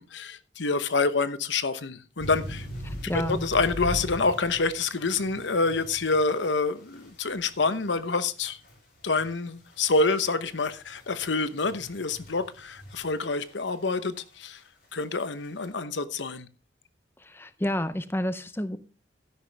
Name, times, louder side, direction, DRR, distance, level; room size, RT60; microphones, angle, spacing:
voice 1, 0.0-2.7 3.4-8.6 9.0-14.6 14.9-16.5, left 3 dB, 75° left, 1.0 m, -27 dB
sound 1, 2.2-13.7 14.2-14.4 15.0-15.5, equal, 55° left, 5.9 m, -41 dB
voice 2, 2.8-3.5 17.2-18.8, left 1 dB, 10° left, 0.6 m, -30 dB
12.5 x 10.5 x 3.4 m
head